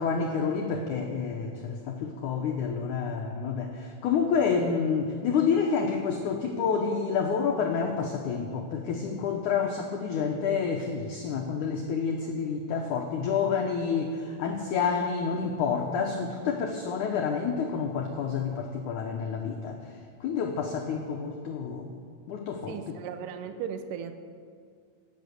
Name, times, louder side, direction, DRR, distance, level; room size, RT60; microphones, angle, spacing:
voice 1, 0.0-19.9 20.2-21.9 22.3-23.0, left 6 dB, 80° left, 2 dB, 1.8 m, -29 dB
voice 2, 22.7-24.1, right 7 dB, 85° right, 8 dB, 1.9 m, -36 dB
18.5 x 8.4 x 6.7 m, 2.2 s
omnidirectional pair, 4.7 m